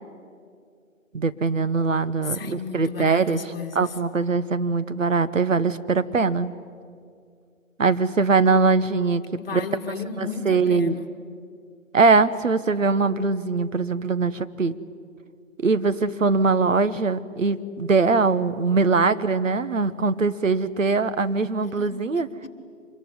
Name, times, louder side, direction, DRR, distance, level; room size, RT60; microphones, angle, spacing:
voice 1, 1.1-3.4 3.7-6.5 7.8-9.2 9.5-9.6 10.2-11.0 11.9-14.8 15.6-22.3, right 4 dB, 65° right, 12 dB, 1.1 m, -22 dB
voice 2, 2.2-3.9 9.4-11.1 21.8-21.9 22.4-22.5, left 6 dB, 45° left, 3 dB, 2.2 m, -33 dB
25.5 x 21.5 x 9.7 m, 2.3 s
figure-of-eight pair, 150°, 41 cm